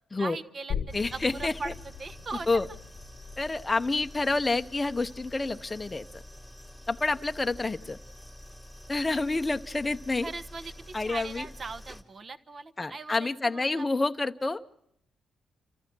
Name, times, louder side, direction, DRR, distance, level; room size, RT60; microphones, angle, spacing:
voice 1, 0.2-2.6 10.2-13.9, right 3 dB, 35° right, 11 dB, 1.2 m, -40 dB
sound 1, 0.7-8.0 8.3-8.4, left 7 dB, 60° left, 1.0 m, -42 dB
voice 2, 0.9-1.7 2.5-2.6 3.4-6.2 6.9-8.0 8.9-10.3 10.9-11.5 12.8-14.6, left 3 dB, 15° left, 7 dB, 0.8 m, -28 dB
sound 2, 0.9-12.0, equal, 10° right, 2.2 m, -47 dB
29.5 x 14.5 x 6.2 m, 0.74 s
cardioid pair, 125°, 0 cm